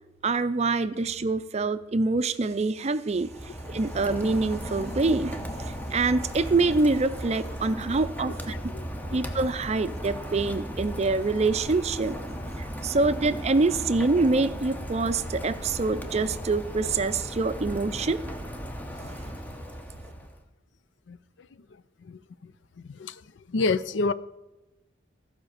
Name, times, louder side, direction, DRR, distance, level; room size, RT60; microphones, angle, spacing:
voice 1, 0.2-12.2 12.6-18.2 19.2-19.4, right 3 dB, 35° right, 0.5 m, -26 dB
Rain, 3.1-20.4, equal, 10° left, 0.8 m, -36 dB
voice 2, 8.2-9.2 21.1-21.2 22.0-22.5 22.9-23.2 23.5-24.1, left 3 dB, 80° left, 0.5 m, -30 dB
15.0 x 5.0 x 6.6 m
head